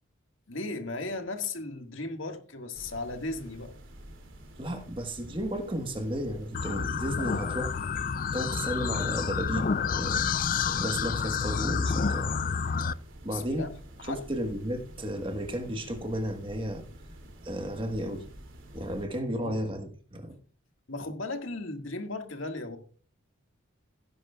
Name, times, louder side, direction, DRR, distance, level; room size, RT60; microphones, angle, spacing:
voice 1, 0.5-3.7 10.6-10.7 13.3-13.7 14.0-14.2 19.3-19.6 20.9-22.8, left 2 dB, 70° left, 1.8 m, -36 dB
sound 1, 2.7-19.1, right 1 dB, 70° right, 2.7 m, -49 dB
voice 2, 4.6-7.8 8.3-10.3 10.8-12.3 13.2-13.7 14.1-16.8 17.4-18.3 18.7-20.4, equal, 25° right, 1.3 m, -33 dB
sound 2, 6.5-12.9, left 6 dB, 40° left, 0.4 m, -29 dB
17.0 x 10.5 x 2.4 m
head